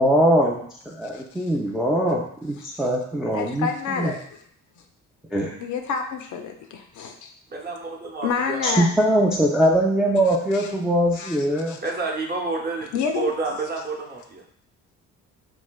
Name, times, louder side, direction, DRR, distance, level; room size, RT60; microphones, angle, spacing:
voice 1, 0.0-4.1 5.3-5.5 8.6-11.8, equal, ahead, -3 dB, 0.3 m, -22 dB
voice 2, 1.1-1.5 3.3-4.3 5.6-7.3 8.2-8.9 10.3-10.7 11.1-11.8 12.9-13.3, left 6 dB, 75° left, 5 dB, 0.5 m, -29 dB
voice 3, 7.5-8.8 11.8-14.4, right 3 dB, 30° right, -2 dB, 0.7 m, -29 dB
3.1 x 2.6 x 2.2 m, 0.65 s
cardioid pair, 90°, 30 cm